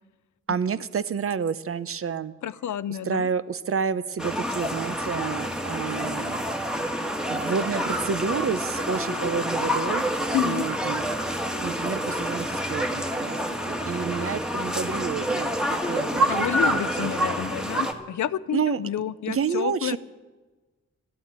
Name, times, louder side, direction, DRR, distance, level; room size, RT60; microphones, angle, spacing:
voice 1, 0.5-2.3 3.0-6.4 7.3-10.0 10.4-13.4 13.7-15.5 15.8-16.3 16.7-17.2 18.5-18.8 19.3-20.0, right 6 dB, 50° right, 15 dB, 0.7 m, -29 dB
voice 2, 2.4-3.3 10.3-10.6 16.3-20.0, left 10 dB, 80° left, 16 dB, 0.6 m, -29 dB
sound 1, 4.2-17.9, equal, ahead, 1.5 m, -27 dB
13.0 x 12.0 x 8.8 m, 1.3 s
cardioid pair, 95°, 29 cm